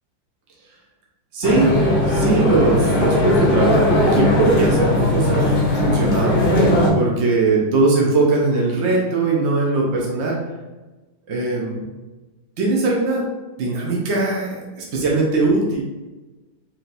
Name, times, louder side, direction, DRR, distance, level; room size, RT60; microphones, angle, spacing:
voice 1, 1.3-6.6 6.9-10.4 11.3-11.9 12.6-13.2 13.6-15.8, right 3 dB, 65° right, -3 dB, 0.6 m, -20 dB
sound 1, 1.4-6.9, left 1 dB, 90° left, 0.4 m, -18 dB
4.8 x 2.8 x 2.5 m, 1.2 s
omnidirectional pair, 2.1 m